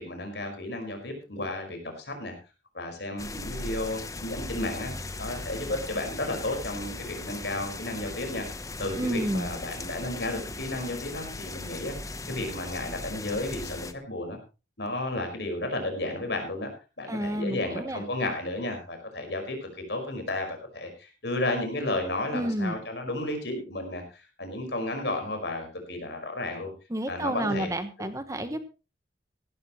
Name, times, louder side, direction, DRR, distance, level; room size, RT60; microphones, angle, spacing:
voice 1, 0.0-2.3 2.7-4.9 5.2-8.5 8.8-14.4 14.8-16.7 17.0-26.7 27.1-27.7, left 2 dB, 70° left, 4 dB, 5.2 m, -33 dB
sound 1, 3.2-13.9, left 2 dB, 20° left, 0.9 m, -38 dB
voice 2, 9.0-9.5 17.1-18.0 22.3-22.8 26.9-28.6, right 1 dB, 20° right, 10 dB, 1.2 m, -30 dB
16.5 x 13.5 x 3.2 m, 0.31 s
head